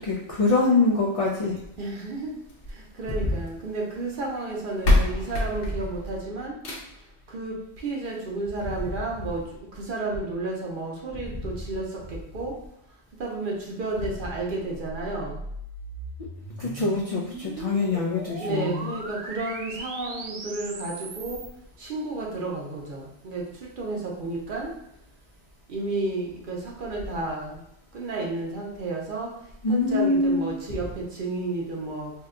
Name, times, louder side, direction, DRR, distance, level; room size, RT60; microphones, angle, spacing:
voice 1, 0.0-1.5 16.6-18.9 29.6-30.5, left 3 dB, 60° left, -3 dB, 0.3 m, -24 dB
voice 2, 1.8-2.3 2.7-6.6 7.0-12.6 13.1-15.4 18.4-21.4 21.8-24.7 25.7-27.6 27.9-32.1, right 2 dB, 55° right, -2 dB, 0.8 m, -32 dB
sound 1, 2.5-3.7 4.5-4.6 4.8-7.1 8.5-8.6 9.1-9.2 9.4-9.5 10.1-10.2, left 2 dB, 85° left, 1.0 m, -26 dB
sound 2, 14.8-21.5, right 3 dB, 85° right, 0.9 m, -38 dB
2.8 x 2.2 x 3.6 m, 0.77 s
omnidirectional pair, 1.2 m